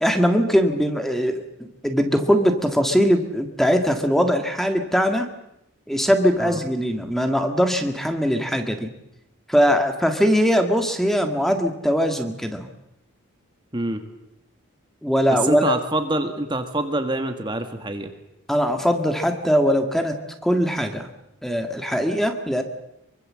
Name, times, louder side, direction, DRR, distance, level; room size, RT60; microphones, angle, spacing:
voice 1, 0.0-5.3 5.9-8.9 9.5-12.7 15.0-15.7 18.5-20.2 20.4-21.1 21.4-22.6, equal, ahead, 6 dB, 1.8 m, -21 dB
voice 2, 15.3-18.1, right 2 dB, 20° right, 6 dB, 1.7 m, -25 dB
25.0 x 24.0 x 7.6 m, 0.84 s
head